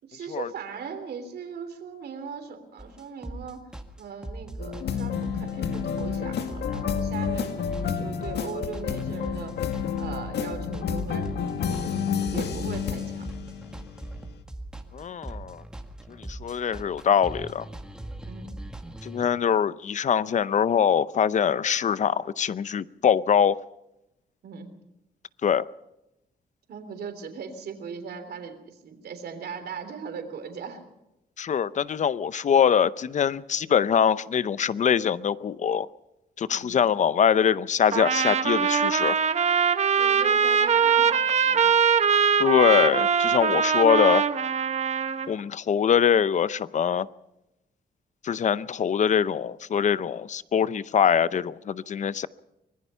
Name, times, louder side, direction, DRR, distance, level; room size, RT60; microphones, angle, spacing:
voice 1, 0.0-3.7 4.0-9.5 10.0-12.0 12.3-13.3 15.3-15.4 18.3-18.6 24.4-24.7 26.7-30.8 36.5-36.8 40.0-41.6, right 6 dB, 75° right, 7 dB, 3.4 m, -39 dB
sound 1, 2.8-19.3, right 1 dB, 5° right, 1.8 m, -40 dB
sound 2, 4.6-14.2, left 7 dB, 90° left, 1.9 m, -30 dB
voice 2, 14.9-15.6 16.2-17.7 19.0-23.6 25.4-25.6 31.4-35.9 36.4-39.2 42.4-44.2 45.3-47.1 48.2-52.3, left 8 dB, 45° left, 17 dB, 0.7 m, -23 dB
Trumpet, 37.9-45.3, right 6 dB, 40° right, 1.1 m, -22 dB
25.0 x 20.5 x 5.7 m, 0.90 s
wide cardioid pair, 140°, 17 cm